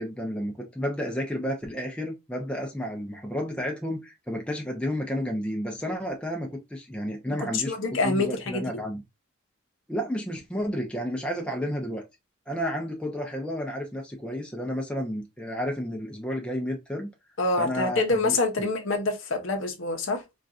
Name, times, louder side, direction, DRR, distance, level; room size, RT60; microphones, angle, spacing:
voice 1, 0.0-9.0 9.9-12.0 12.5-17.1 17.6-18.7, equal, 5° left, 0.5 m, -31 dB
voice 2, 7.5-8.7 17.4-20.2, left 3 dB, 60° left, 0.7 m, -26 dB
3.8 x 2.4 x 2.4 m
head